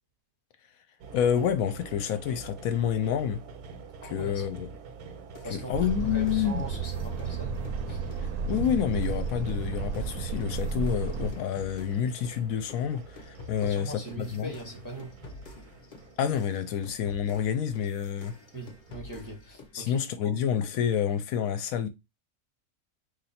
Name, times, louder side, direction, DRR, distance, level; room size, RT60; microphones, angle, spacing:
sound 1, 1.0-19.4, right 4 dB, 90° right, 1.3 m, -47 dB
voice 1, 1.1-3.4 4.1-4.7 5.5-6.6 8.5-14.5 16.2-18.3 19.7-21.9, left 8 dB, 70° left, 0.9 m, -28 dB
voice 2, 4.0-4.4 5.4-7.6 7.9-8.1 13.6-15.1 18.5-20.4, right 1 dB, 15° right, 0.7 m, -41 dB
sound 2, 5.3-12.4 12.7-19.8, left 3 dB, 50° left, 0.6 m, -49 dB
Truck, 5.7-11.3, right 5 dB, 70° right, 1.0 m, -32 dB
3.3 x 2.6 x 4.1 m
omnidirectional pair, 1.6 m